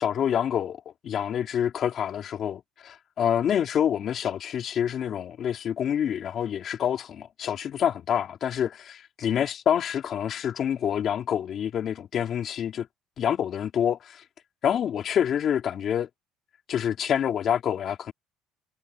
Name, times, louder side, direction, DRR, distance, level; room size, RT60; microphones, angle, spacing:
voice 1, 0.0-12.9 13.2-14.2 14.6-16.1 16.7-18.1, left 9 dB, 40° left, 4.1 m, -27 dB
cardioid pair, 150°, 0 cm